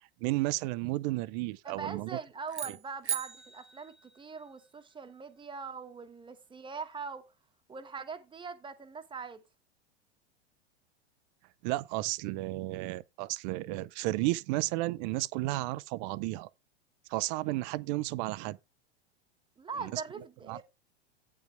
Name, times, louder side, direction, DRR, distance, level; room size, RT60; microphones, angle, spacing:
voice 1, 0.2-2.2 2.7-2.8 11.6-16.5 17.1-18.6 19.8-20.0 20.5-20.6, right 19 dB, 40° right, 0.6 m, -33 dB
voice 2, 1.6-7.2 7.7-9.4 19.6-20.6, right 5 dB, 15° right, 1.2 m, -42 dB
sound 1, 2.5-4.8, right 9 dB, 85° right, 0.9 m, -39 dB
9.0 x 5.4 x 4.5 m
figure-of-eight pair, 95°, 33 cm